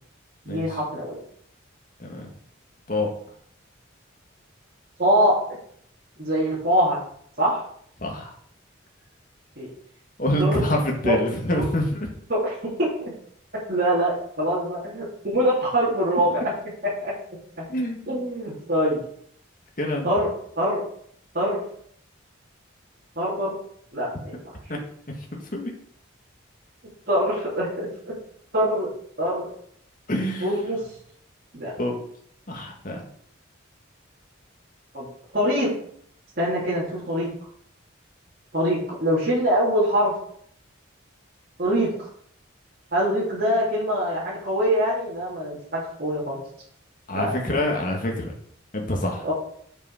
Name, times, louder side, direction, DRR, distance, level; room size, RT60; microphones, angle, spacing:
voice 1, 0.4-1.2 5.0-5.4 6.2-7.0 7.4-7.7 9.6-9.7 10.4-10.6 11.0-11.1 11.5-11.7 12.3-13.1 13.7-16.4 17.0-17.1 17.6-17.7 18.1-19.0 20.0-20.3 20.6-20.8 21.3-21.6 23.1-23.5 23.9-24.4 27.1-28.1 28.5-28.9 29.2-29.5 30.4-30.8 31.5-31.7 34.9-35.1 35.3-35.7 36.4-37.3 38.5-40.1 41.6-42.1 42.9-46.4 47.1-47.3 49.2-49.3, equal, 50° right, -7 dB, 3.3 m, -24 dB
voice 2, 2.0-2.3 2.9-3.1 8.0-8.3 10.2-12.1 17.7-18.2 19.8-20.1 24.7-24.8 25.3-25.7 30.1-30.5 31.8-32.0 32.5-33.0 47.1-48.3 48.7-49.3, left 1 dB, 45° left, 1 dB, 2.0 m, -26 dB
8.1 x 6.8 x 5.0 m, 0.64 s
head